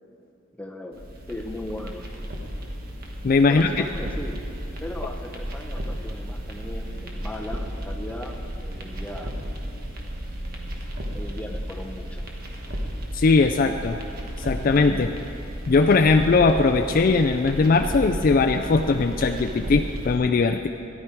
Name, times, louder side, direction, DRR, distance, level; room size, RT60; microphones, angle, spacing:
voice 1, 0.5-1.0 1.3-2.1 3.5-4.5 4.8-9.3 11.1-12.2, left 1 dB, 5° left, 3 dB, 0.8 m, -37 dB
sound 1, 0.9-20.1, equal, 50° right, 1.3 m, -34 dB
voice 2, 3.2-3.8 13.1-14.0 14.4-15.1 15.7-20.7, left 4 dB, 45° left, 5 dB, 0.4 m, -20 dB
14.5 x 11.0 x 4.6 m, 2.8 s
head